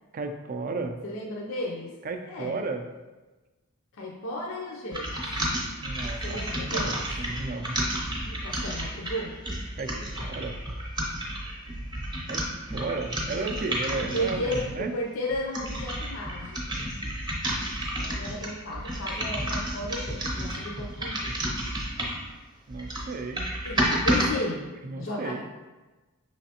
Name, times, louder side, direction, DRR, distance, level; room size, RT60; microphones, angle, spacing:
voice 1, 0.1-1.0 2.0-2.9 5.8-7.9 9.8-9.9 10.3-10.6 12.3-12.4 12.7-14.9 22.7-23.5 24.8-25.4, right 3 dB, 40° right, 6 dB, 0.4 m, -34 dB
voice 2, 1.0-1.9 2.2-2.6 4.0-5.4 6.2-7.1 8.2-9.4 10.0-10.3 13.9-16.9 18.0-21.3 23.6-23.8 24.0-25.4, left 1 dB, 65° left, -2 dB, 0.6 m, -34 dB
sound 1, 4.9-14.8 15.3-22.3 22.7-24.3, right 1 dB, 20° right, 0.8 m, -31 dB
5.9 x 3.2 x 2.8 m, 1.2 s
head